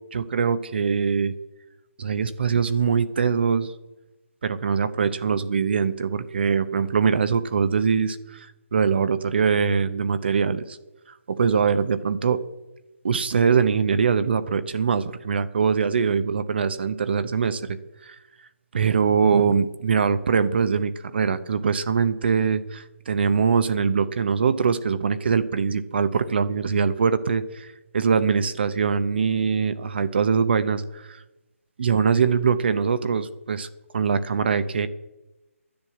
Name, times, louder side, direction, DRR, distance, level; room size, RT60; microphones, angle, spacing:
voice 1, 0.1-1.3 2.0-3.7 4.4-10.8 11.3-12.4 13.0-18.2 18.7-31.2 31.8-33.7 33.9-34.9, right 6 dB, 45° right, 12 dB, 0.7 m, -23 dB
10.5 x 10.5 x 7.7 m, 1.0 s
hypercardioid pair, 165°, 8 cm